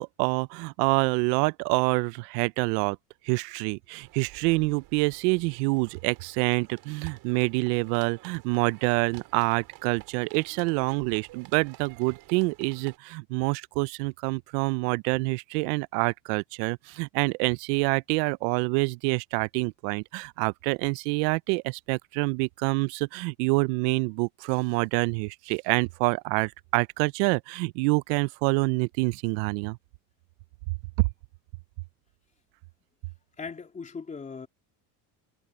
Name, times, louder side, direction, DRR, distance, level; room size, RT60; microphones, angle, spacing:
voice 1, 0.0-3.0 3.2-29.8 31.0-31.1, right 27 dB, 85° right, 0.6 m, -26 dB
sound 1, 4.0-13.0, right 18 dB, 55° right, 4.9 m, -52 dB
voice 2, 33.4-34.5, left 5 dB, 15° left, 3.5 m, -38 dB
cardioid pair, 165°, 47 cm